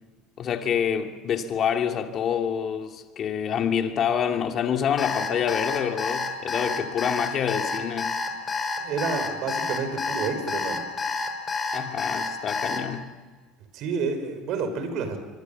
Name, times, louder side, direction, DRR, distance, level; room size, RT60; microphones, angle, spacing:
voice 1, 0.4-8.1 11.7-13.1, left 8 dB, 45° left, 2.6 m, -27 dB
Alarm, 5.0-12.8, left 4 dB, 25° left, 4.6 m, -28 dB
voice 2, 8.8-10.8 13.7-15.2, right 5 dB, 60° right, 5.4 m, -29 dB
25.0 x 23.0 x 7.2 m
supercardioid pair, 115°, 0 cm